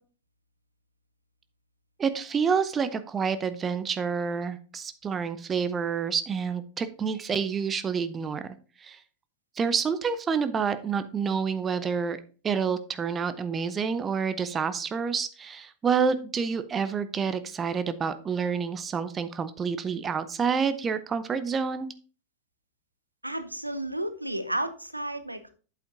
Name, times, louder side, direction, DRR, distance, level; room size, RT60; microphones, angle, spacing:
voice 1, 2.0-8.5 8.8-9.0 9.6-12.2 12.4-21.9, right 6 dB, 20° right, 12 dB, 0.6 m, -28 dB
voice 2, 23.2-25.5, right 1 dB, 85° right, 11 dB, 0.7 m, -32 dB
8.3 x 8.0 x 2.6 m, 0.36 s
figure-of-eight pair, 90°, 0 cm